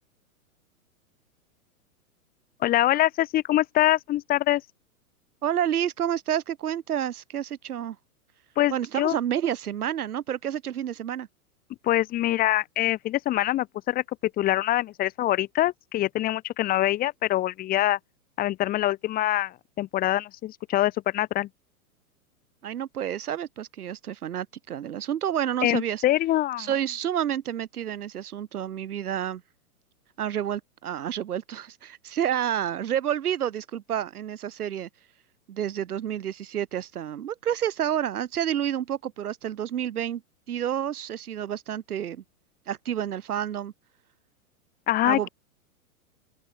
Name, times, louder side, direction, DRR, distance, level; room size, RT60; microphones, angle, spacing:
voice 1, 2.6-4.6 8.6-9.2 11.8-18.0 18.4-21.5 25.6-26.7 44.9-45.3, left 14 dB, 20° left, 0.8 m, -24 dB
voice 2, 5.4-8.0 8.7-11.3 22.6-26.0 26.6-29.4 30.2-34.9 35.5-40.2 40.5-42.2 42.7-43.7 45.0-45.3, right 10 dB, 85° right, 1.5 m, -29 dB
open air
hypercardioid pair, 130°, 44 cm